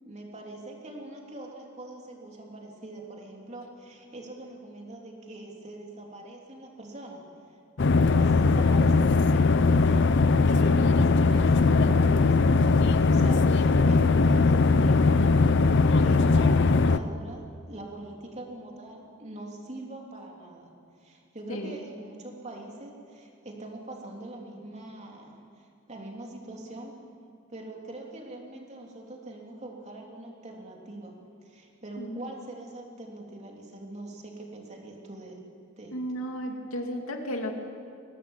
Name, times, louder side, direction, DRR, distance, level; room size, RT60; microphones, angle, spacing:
voice 1, 0.0-7.2 7.8-10.0 10.5-20.7 21.0-26.9 27.5-31.1 31.4-35.4 35.8-36.0, right 2 dB, 35° right, 0 dB, 3.2 m, -43 dB
sound 1, 7.8-17.0, left 3 dB, 55° left, 0.6 m, -20 dB
voice 2, 35.9-37.6, equal, 90° left, 3 dB, 2.6 m, -33 dB
22.5 x 18.5 x 7.5 m, 2.4 s
head